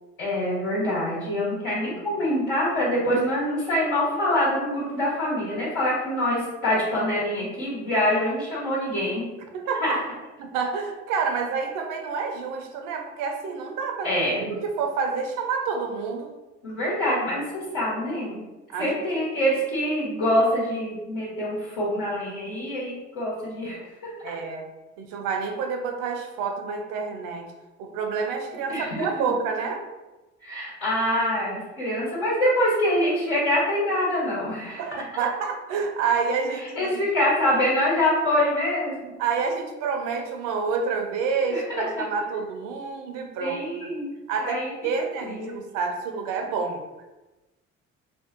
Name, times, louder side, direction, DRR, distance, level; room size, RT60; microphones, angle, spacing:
voice 1, 0.2-9.2 9.9-10.0 14.0-14.5 16.6-18.4 18.8-23.8 24.3-24.4 28.7-29.1 30.4-35.0 36.6-39.1 41.5-42.0 43.4-44.7 45.2-45.5, left 1 dB, 80° left, -9 dB, 1.2 m, -25 dB
voice 2, 9.5-10.0 10.4-14.1 14.5-16.3 18.7-18.9 24.2-24.6 25.0-27.5 27.8-29.8 34.8-36.9 39.2-43.9 44.3-46.8, right 5 dB, 75° right, 4 dB, 0.5 m, -28 dB
2.6 x 2.3 x 2.4 m, 1.1 s
hypercardioid pair, 60°, 33 cm